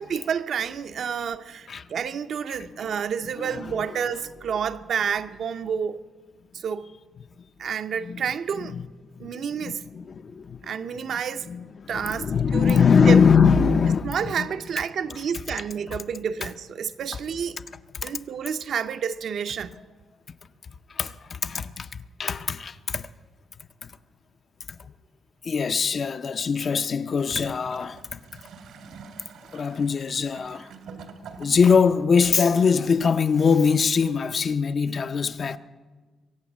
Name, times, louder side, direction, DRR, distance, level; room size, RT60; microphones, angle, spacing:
voice 1, 0.0-6.0 6.5-6.9 7.6-8.8 9.2-9.8 10.6-11.5 11.9-13.2 14.0-17.6 18.0-19.8, right 7 dB, 55° right, 0.6 m, -29 dB
voice 2, 9.6-10.6 11.5-14.5 18.0-18.1 21.0-23.1 25.4-28.2 29.5-30.7 31.4-35.6, left 6 dB, 40° left, 0.5 m, -22 dB
Gurgling / Toilet flush, 27.1-32.0 32.8-32.9, right 5 dB, 85° right, 1.9 m, -46 dB
22.5 x 8.6 x 7.3 m
cardioid pair, 145°, 0 cm